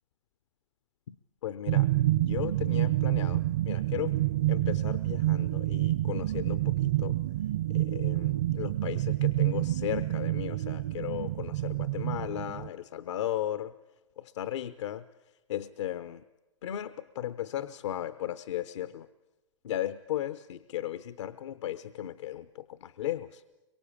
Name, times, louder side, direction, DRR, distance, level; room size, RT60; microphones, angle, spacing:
voice 1, 1.4-1.9 2.3-4.1 4.5-7.2 7.7-13.7 14.2-15.0 15.5-16.2 16.6-19.1 19.6-23.4, left 12 dB, 70° left, 14 dB, 0.8 m, -36 dB
sound 1, 1.7-12.7, right 15 dB, 65° right, 0.9 m, -28 dB
24.5 x 23.0 x 8.6 m, 1.0 s
hypercardioid pair, 125°, 15 cm